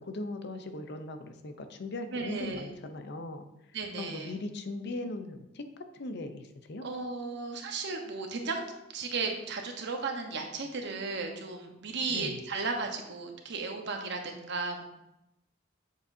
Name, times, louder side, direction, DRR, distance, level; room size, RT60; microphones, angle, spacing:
voice 1, 0.0-3.5 4.0-5.6 5.9-6.9 12.1-12.4, left 2 dB, 55° left, 8 dB, 0.6 m, -39 dB
voice 2, 2.1-2.7 3.7-4.3 6.8-8.6 8.9-14.8, right 4 dB, 60° right, 3 dB, 1.0 m, -35 dB
7.6 x 6.7 x 2.7 m, 0.88 s
head